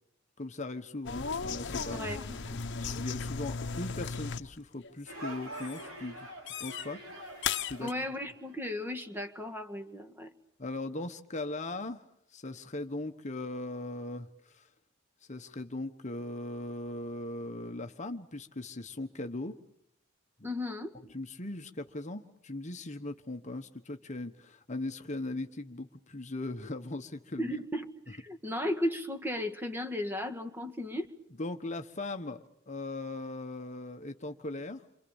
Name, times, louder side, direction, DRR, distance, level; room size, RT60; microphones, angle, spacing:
voice 1, 0.4-2.2 2.6-7.0 7.7-7.9 10.6-12.0 12.3-14.7 15.3-19.5 20.4-20.5 21.1-27.5 31.4-34.8, left 2 dB, 35° left, 6 dB, 1.2 m, -39 dB
sound 1, 1.0-4.6 4.8-5.3 5.6-5.8 6.5-6.9 7.4-7.9, left 5 dB, 60° left, 1.0 m, -36 dB
voice 2, 1.9-2.6 7.8-10.3 20.4-20.9 27.4-31.1, left 1 dB, 10° right, 6 dB, 1.8 m, -35 dB
sound 2, 5.1-8.7, right 1 dB, 80° right, 6.6 m, -45 dB
28.5 x 26.5 x 7.2 m, 0.71 s
head